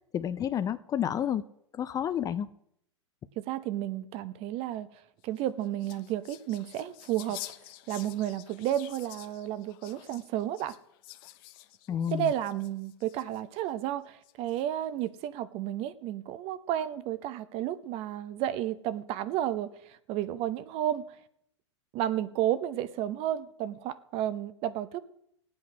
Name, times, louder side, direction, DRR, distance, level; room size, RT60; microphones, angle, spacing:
voice 1, 0.1-1.4 1.7-2.5 11.9-12.3, left 9 dB, 25° left, 0.6 m, -30 dB
voice 2, 3.4-4.9 5.2-7.4 7.9-10.7 12.1-21.2 21.9-25.0, right 12 dB, 40° right, 1.0 m, -32 dB
sound 1, 5.2-13.6 14.2-14.8, left 16 dB, 50° left, 1.0 m, -49 dB
17.5 x 8.7 x 6.1 m
hypercardioid pair, 105°, 15 cm